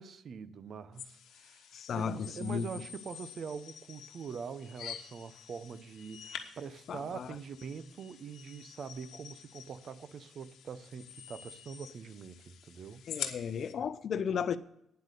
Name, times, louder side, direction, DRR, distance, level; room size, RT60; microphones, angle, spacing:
voice 1, 0.0-1.7 1.9-13.0, right 6 dB, 55° right, 0.7 m, -44 dB
sound 1, 1.0-13.7, left 9 dB, 80° left, 1.1 m, -47 dB
voice 2, 1.7-2.7 6.9-7.3 13.1-14.6, left 7 dB, 55° left, 0.6 m, -34 dB
9.5 x 8.0 x 6.5 m
cardioid pair, 90°, 0 cm